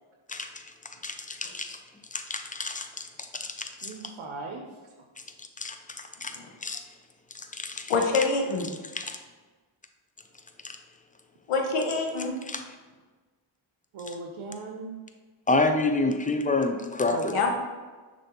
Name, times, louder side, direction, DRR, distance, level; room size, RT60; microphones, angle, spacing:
voice 1, 0.3-0.7 1.0-1.8 2.1-3.9 5.4-6.8 7.3-7.9 8.9-9.2 10.6-10.8 12.5-12.6 15.5-17.3, left 3 dB, 15° left, 6 dB, 0.5 m, -29 dB
voice 2, 3.8-4.9 13.9-14.9 17.0-17.5, right 3 dB, 70° right, 2 dB, 0.7 m, -37 dB
voice 3, 7.9-8.7 11.5-12.3 17.3-17.5, left 4 dB, 85° left, 2 dB, 0.8 m, -25 dB
6.2 x 2.7 x 2.9 m, 1.3 s
cardioid pair, 40°, 49 cm